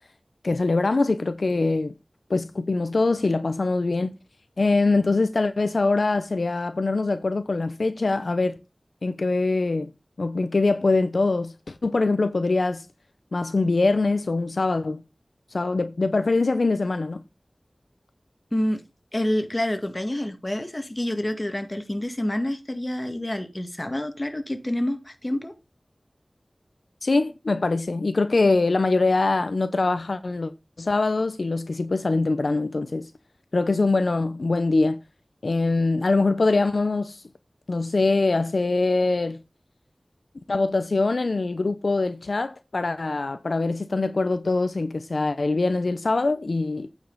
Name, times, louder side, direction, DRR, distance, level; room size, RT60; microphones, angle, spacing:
voice 1, 0.4-1.9 2.3-4.1 4.6-8.6 9.0-9.9 10.2-12.9 13.3-15.0 15.5-17.2 27.0-30.5 30.8-33.1 33.5-35.0 35.4-37.2 37.7-39.4 40.5-46.9, left 3 dB, 80° left, 0.8 m, -23 dB
voice 2, 19.1-25.5, left 1 dB, 30° left, 1.9 m, -28 dB
8.9 x 5.4 x 5.4 m
wide cardioid pair, 60°, 0 cm